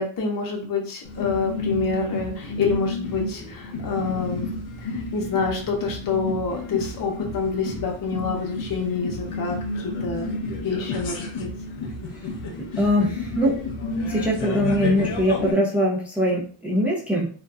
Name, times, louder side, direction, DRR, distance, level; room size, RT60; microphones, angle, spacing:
voice 1, 0.0-4.5 4.8-9.6 9.8-11.5, left 4 dB, 45° left, 1 dB, 0.7 m, -27 dB
sound 1, 1.0-15.5, left 2 dB, 90° left, 0.7 m, -31 dB
voice 2, 12.6-13.6 14.0-17.3, equal, 5° right, -4 dB, 0.7 m, -22 dB
2.7 x 2.2 x 2.3 m, 0.43 s
cardioid pair, 80°, 46 cm